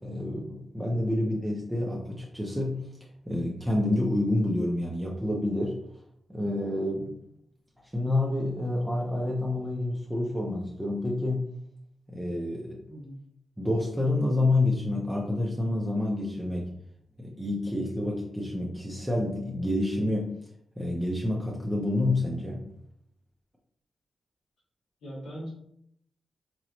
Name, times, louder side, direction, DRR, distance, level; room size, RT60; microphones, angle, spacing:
voice 1, 0.0-2.8 3.3-5.8 6.3-7.1 7.9-11.5 12.1-12.8 13.6-16.7 17.2-20.4 20.8-22.6, left 1 dB, 10° right, -3 dB, 1.0 m, -28 dB
voice 2, 12.9-13.2 25.0-25.5, equal, 90° left, -8 dB, 1.7 m, -40 dB
4.7 x 2.7 x 3.2 m, 0.72 s
supercardioid pair, 45°, 0 cm